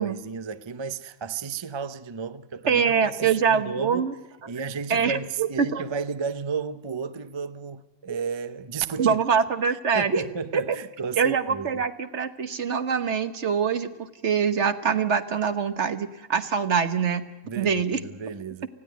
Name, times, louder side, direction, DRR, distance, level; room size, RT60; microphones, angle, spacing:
voice 1, 0.0-4.1 4.5-9.2 9.7-11.8 17.4-18.7, right 5 dB, 35° right, 0.4 m, -33 dB
voice 2, 2.7-4.1 4.9-5.8 8.1-8.2 9.0-10.2 10.5-10.6 11.2-17.3 17.6-18.0, right 6 dB, 50° right, 1.4 m, -24 dB
19.5 x 15.5 x 9.2 m
omnidirectional pair, 1.5 m